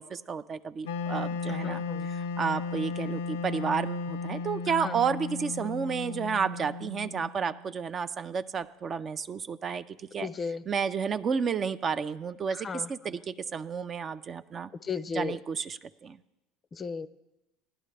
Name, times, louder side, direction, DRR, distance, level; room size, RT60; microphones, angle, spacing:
voice 1, 0.0-1.8 2.1-9.8 10.1-10.3 10.7-14.7 15.1-16.2, right 6 dB, 35° right, 13 dB, 0.4 m, -31 dB
Wind instrument woodwind instrument, 0.8-7.8, left 4 dB, 90° left, 0.4 m, -35 dB
voice 2, 1.5-2.1 4.8-5.0 10.2-10.6 12.5-13.2 14.8-15.4 16.7-17.1, left 5 dB, 30° left, 15 dB, 0.4 m, -35 dB
16.5 x 11.0 x 3.3 m, 0.97 s
supercardioid pair, 90°, 0 cm